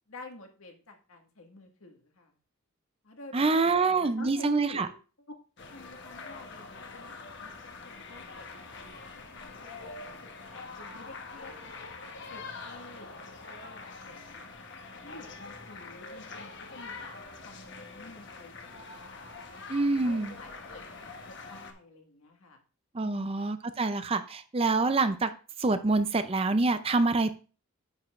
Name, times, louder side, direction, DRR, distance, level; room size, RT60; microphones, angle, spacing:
voice 1, 0.1-2.3 3.0-4.9 5.7-7.6 7.8-11.8 12.3-13.1 13.5-14.5 15.0-17.1 17.5-22.6, left 2 dB, 70° left, 2 dB, 1.8 m, -50 dB
voice 2, 3.3-4.9 19.7-20.4 22.9-25.3 25.6-27.3, right 3 dB, 25° right, 10 dB, 0.5 m, -26 dB
sound 1, 5.6-21.7, left 3 dB, 50° left, 1.1 m, -44 dB
9.7 x 7.9 x 2.5 m, 0.35 s
head